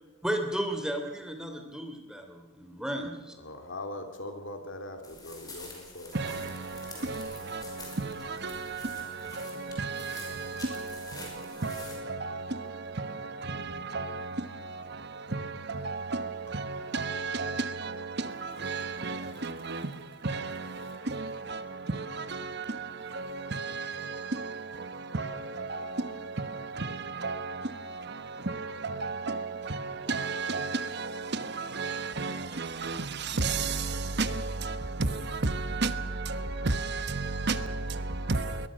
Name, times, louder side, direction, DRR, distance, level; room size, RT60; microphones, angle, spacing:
voice 1, 0.2-3.3, right 1 dB, 5° right, 3.1 m, -33 dB
voice 2, 3.4-6.2 19.3-19.4 20.8-21.0, left 1 dB, 60° left, 3.1 m, -41 dB
sound 1, 5.0-12.0, left 2 dB, 20° left, 5.5 m, -47 dB
voice 3, 6.1-38.7, right 3 dB, 50° right, 1.2 m, -34 dB
22.0 x 20.5 x 6.4 m
head